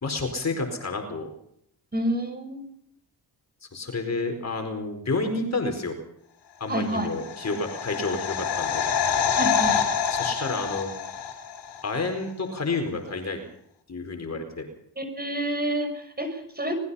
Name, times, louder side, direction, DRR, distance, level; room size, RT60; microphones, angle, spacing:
voice 1, 0.0-1.3 3.7-6.0 6.6-8.8 10.1-10.9 11.8-13.4 13.9-14.7, left 3 dB, 35° left, 5 dB, 4.6 m, -30 dB
voice 2, 1.9-2.6 6.7-7.1 9.3-9.8 15.0-16.7, right 1 dB, 20° right, 8 dB, 6.0 m, -28 dB
sound 1, 6.9-11.8 12.1-12.2, left 7 dB, 65° left, 3.7 m, -26 dB
25.0 x 20.0 x 5.7 m, 0.74 s
cardioid pair, 75°, 44 cm